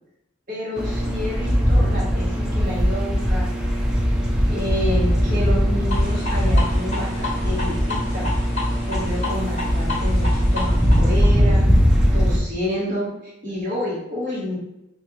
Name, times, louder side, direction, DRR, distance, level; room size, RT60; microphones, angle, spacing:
voice 1, 0.5-3.5 4.5-8.3 8.9-11.7 12.1-14.6, left 1 dB, 45° right, -7 dB, 1.2 m, -29 dB
sound 1, 0.8-12.4, equal, 5° right, 0.4 m, -20 dB
sound 2, 5.9-11.3, left 2 dB, 40° left, 1.1 m, -31 dB
3.1 x 2.5 x 2.9 m, 0.87 s
head